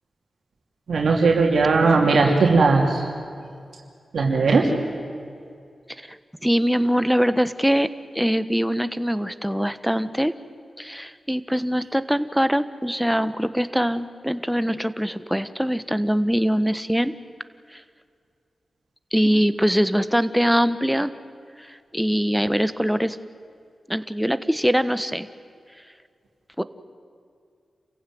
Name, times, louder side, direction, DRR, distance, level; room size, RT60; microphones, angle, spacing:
voice 1, 0.9-3.1 4.1-4.7, right 4 dB, 80° right, 1 dB, 2.8 m, -18 dB
voice 2, 6.4-7.9 8.1-10.3 10.8-17.1 17.7-17.8 19.1-21.1 21.6-23.2 23.9-25.3 26.6-26.7, equal, 5° right, 12 dB, 1.2 m, -22 dB
28.0 x 15.5 x 9.5 m, 2.3 s
cardioid pair, 45°, 0 cm